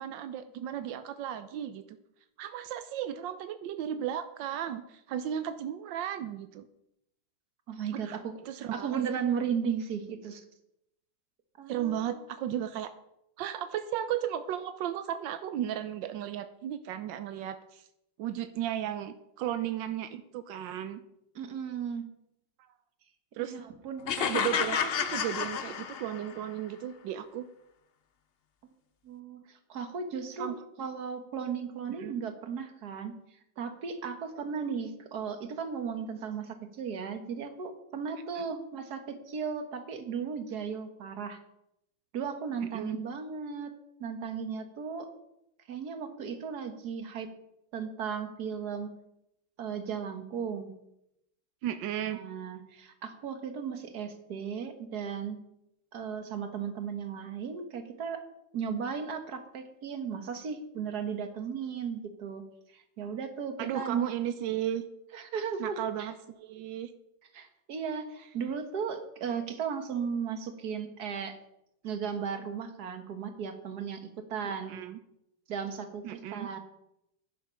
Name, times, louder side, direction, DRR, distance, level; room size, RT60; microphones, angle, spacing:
voice 1, 0.0-1.8 2.4-6.7 7.9-8.2 8.4-9.0 11.7-12.9 13.4-17.9 18.2-21.0 23.3-23.5 24.2-27.5 30.4-30.6 32.0-32.2 38.4-38.5 42.6-43.0 51.6-52.2 63.6-64.8 65.6-66.9 74.7-75.0 76.0-76.5, right 10 dB, 90° right, 10 dB, 1.4 m, -35 dB
voice 2, 7.7-8.4 8.7-10.4 11.6-12.0 21.4-22.1 23.4-24.3 28.6-28.7 29.0-33.1 33.6-41.4 42.1-43.7 44.0-45.1 45.7-47.3 47.7-48.9 49.6-50.8 52.1-55.4 55.9-58.2 58.5-62.4 62.7-64.1 65.1-66.1 67.3-71.4 71.8-74.8 75.5-76.6, right 6 dB, 60° right, 7 dB, 1.8 m, -36 dB
sound 1, 24.1-26.4, left 7 dB, 65° left, 0.5 m, -30 dB
10.5 x 9.7 x 5.6 m, 0.82 s
omnidirectional pair, 2.0 m